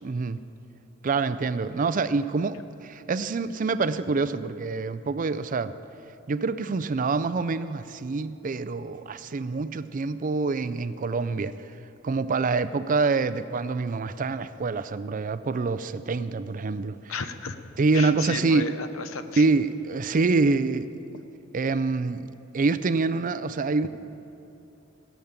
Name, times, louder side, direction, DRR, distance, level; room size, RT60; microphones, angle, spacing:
voice 1, 0.0-0.4 1.0-5.8 6.3-11.6 12.0-17.1 17.8-18.7 19.4-21.0 21.5-23.9, right 4 dB, 40° right, 13 dB, 0.4 m, -26 dB
voice 2, 17.1-17.6 17.9-19.4 23.8-23.9, left 4 dB, 75° left, 9 dB, 0.8 m, -33 dB
17.0 x 7.3 x 8.8 m, 2.9 s
head